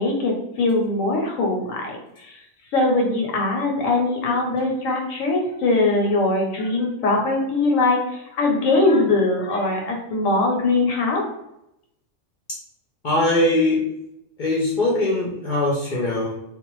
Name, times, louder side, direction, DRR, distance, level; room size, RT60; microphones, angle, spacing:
voice 1, 0.0-2.4 2.7-11.2, left 2 dB, 85° left, 1 dB, 1.1 m, -21 dB
voice 2, 13.0-13.8 14.4-16.4, left 1 dB, 60° left, -5 dB, 0.5 m, -21 dB
2.4 x 2.0 x 3.0 m, 0.81 s
omnidirectional pair, 1.3 m